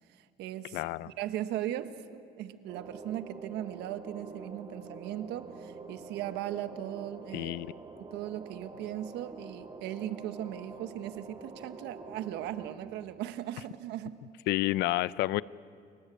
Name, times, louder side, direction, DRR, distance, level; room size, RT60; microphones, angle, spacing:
voice 1, 0.2-7.6 8.0-14.1, right 12 dB, 85° right, 10 dB, 1.3 m, -38 dB
voice 2, 0.7-1.1 7.3-7.7 14.5-15.4, left 17 dB, 85° left, 19 dB, 0.6 m, -29 dB
sound 1, 2.7-12.7, right 3 dB, 30° right, 4.4 m, -46 dB
29.5 x 22.5 x 8.5 m, 2.4 s
cardioid pair, 110°, 17 cm